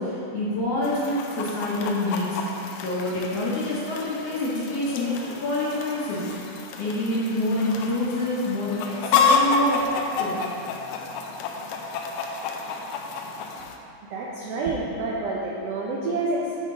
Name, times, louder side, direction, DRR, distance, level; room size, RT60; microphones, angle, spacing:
voice 1, 0.0-2.5 2.8-6.2 6.8-10.4, left 1 dB, 60° left, -7 dB, 1.8 m, -27 dB
Chicken rooster, 0.8-13.8, left 4 dB, 90° left, 2.2 m, -29 dB
voice 2, 14.1-16.7, right 2 dB, 80° right, -4 dB, 1.4 m, -28 dB
7.7 x 5.2 x 3.9 m, 2.7 s
omnidirectional pair, 3.7 m